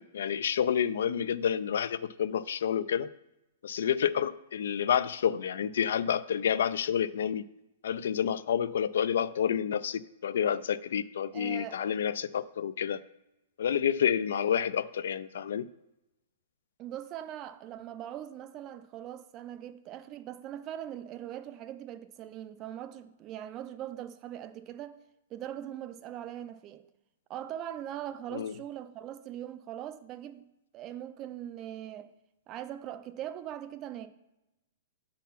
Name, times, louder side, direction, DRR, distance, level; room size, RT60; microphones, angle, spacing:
voice 1, 0.0-3.1 3.6-7.4 7.8-13.0 13.6-15.7 28.3-28.5, left 8 dB, 65° left, 0.3 m, -29 dB
voice 2, 11.3-11.9 16.8-25.0 25.3-26.8 27.3-30.4 30.7-32.1 32.5-34.1, right 11 dB, 20° right, 0.3 m, -41 dB
8.3 x 3.7 x 5.8 m
hypercardioid pair, 175°, 0 cm